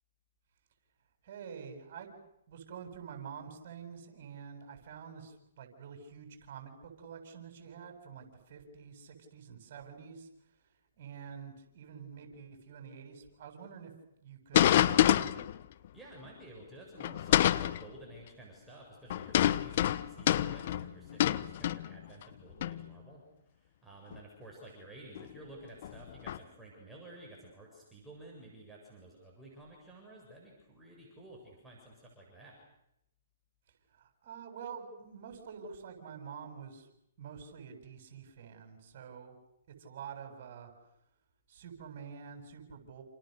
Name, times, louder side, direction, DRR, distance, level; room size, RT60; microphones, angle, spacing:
voice 1, 1.2-2.2 2.5-10.3 11.0-13.9 14.2-15.5 33.9-36.9 37.2-39.4 39.8-40.7 41.5-43.0, right 7 dB, 50° right, 5 dB, 7.9 m, -47 dB
sound 1, 14.5-15.6 17.0-17.8 19.1-22.2 22.6-22.9 24.1-24.2 25.2-25.3 25.8-26.4, left 12 dB, 50° left, 1.1 m, -27 dB
voice 2, 15.9-23.2 23.5-32.6, right 1 dB, 5° right, -3 dB, 7.6 m, -52 dB
29.0 x 28.5 x 6.8 m, 0.80 s
hypercardioid pair, 135°, 0 cm